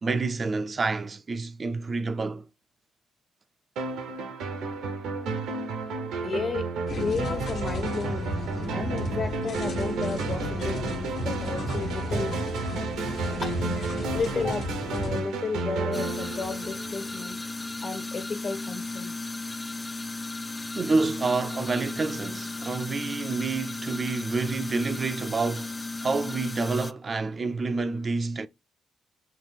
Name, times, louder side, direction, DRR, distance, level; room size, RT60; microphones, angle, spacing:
voice 1, 0.0-2.5 20.7-28.5, right 3 dB, 40° right, 0.4 m, -28 dB
sound 1, 3.8-17.3, right 3 dB, 85° right, 0.7 m, -32 dB
voice 2, 6.2-6.7 7.0-8.3 8.7-12.3 13.4-13.5 14.1-17.4 17.8-19.1, left 4 dB, 55° left, 1.4 m, -33 dB
sound 2, 6.9-15.2, left 1 dB, 70° left, 1.3 m, -33 dB
sound 3, 15.9-26.9, left 3 dB, 20° left, 0.4 m, -35 dB
5.8 x 2.5 x 3.4 m
supercardioid pair, 60°, 0 cm